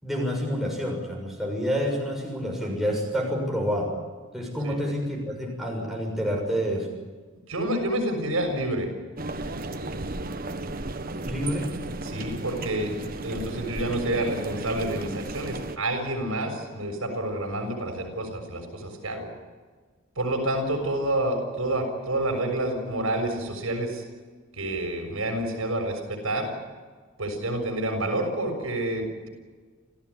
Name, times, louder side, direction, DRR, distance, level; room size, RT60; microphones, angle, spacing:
voice 1, 0.0-3.9 4.3-6.9 11.2-11.7, equal, ahead, -1 dB, 6.6 m, -28 dB
voice 2, 7.5-8.9 12.0-12.9 13.2-19.3 20.2-24.0 24.5-26.5 27.2-29.3, right 1 dB, 75° right, 4 dB, 6.7 m, -28 dB
sound 1, 9.2-15.8, right 2 dB, 40° right, 1.3 m, -34 dB
29.5 x 15.5 x 9.9 m, 1.4 s
head